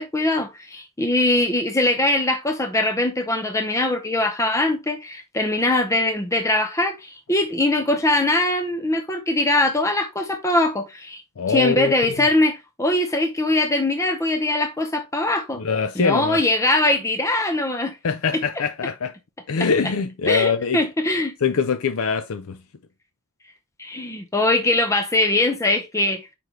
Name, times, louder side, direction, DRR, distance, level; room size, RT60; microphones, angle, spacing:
voice 1, 0.0-11.2 11.5-15.6 16.0-18.0 20.3-21.3 23.8-26.3, left 2 dB, 15° left, 0.7 m, -22 dB
voice 2, 11.4-12.3 15.5-16.4 18.0-19.1 19.5-20.8 21.4-22.6, left 5 dB, 65° left, 0.5 m, -23 dB
6.5 x 5.3 x 3.1 m
head